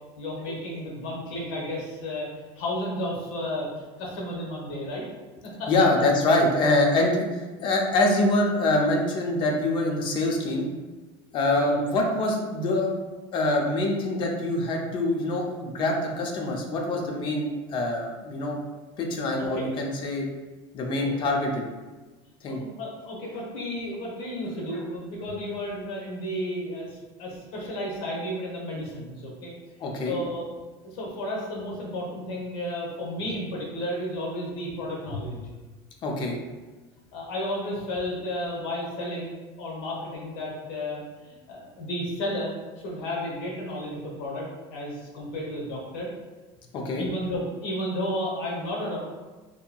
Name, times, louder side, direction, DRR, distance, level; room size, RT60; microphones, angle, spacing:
voice 1, 0.2-5.0 5.4-5.7 11.6-11.8 19.4-19.7 21.0-21.1 22.5-29.5 30.0-30.5 30.8-35.4 37.1-46.1 47.0-49.0, left 1 dB, 80° left, -3 dB, 0.8 m, -33 dB
voice 2, 5.7-10.7 11.3-12.9 13.3-18.6 19.0-20.3 20.7-21.6 22.4-22.6 29.8-30.2 36.0-36.4 46.7-47.0, left 2 dB, 35° left, 1 dB, 0.5 m, -25 dB
2.8 x 2.6 x 2.2 m, 1.2 s
cardioid pair, 145°, 14 cm